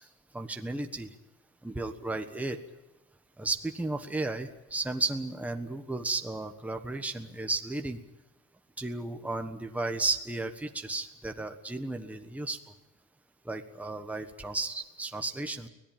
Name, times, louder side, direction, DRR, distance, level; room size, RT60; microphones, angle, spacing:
voice 1, 0.3-1.1 1.6-2.6 3.4-8.0 8.8-12.6 13.4-15.7, right 2 dB, 5° right, 5 dB, 1.3 m, -34 dB
24.5 x 17.5 x 9.0 m, 1.1 s
cardioid pair, 135°, 30 cm